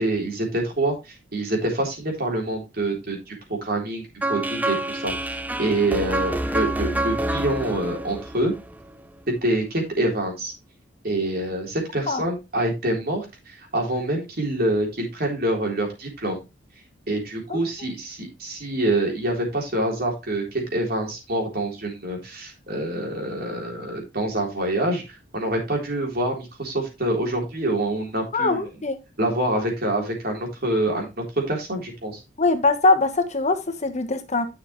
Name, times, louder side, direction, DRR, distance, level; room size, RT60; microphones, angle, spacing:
voice 1, 0.0-4.0 4.3-8.5 9.4-10.5 11.0-16.4 17.1-28.6 29.2-32.2, right 1 dB, 55° right, 1 dB, 3.6 m, -26 dB
sound 1, 4.2-9.2, right 1 dB, 10° right, 0.5 m, -28 dB
voice 2, 28.3-29.0 29.5-29.6 32.4-34.5, left 3 dB, 40° left, 8 dB, 1.2 m, -22 dB
10.0 x 6.6 x 3.1 m, 0.25 s
head